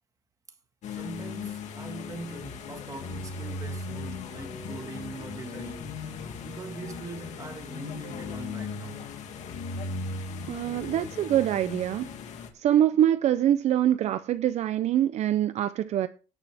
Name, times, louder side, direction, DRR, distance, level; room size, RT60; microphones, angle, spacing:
sound 1, 0.8-12.5, left 4 dB, 55° left, 2.3 m, -37 dB
voice 1, 0.9-6.0 6.4-9.1, right 3 dB, 25° right, 1.7 m, -42 dB
voice 2, 10.5-12.1 12.5-16.1, right 11 dB, 55° right, 0.5 m, -24 dB
18.5 x 6.7 x 3.5 m
cardioid pair, 150°, 14 cm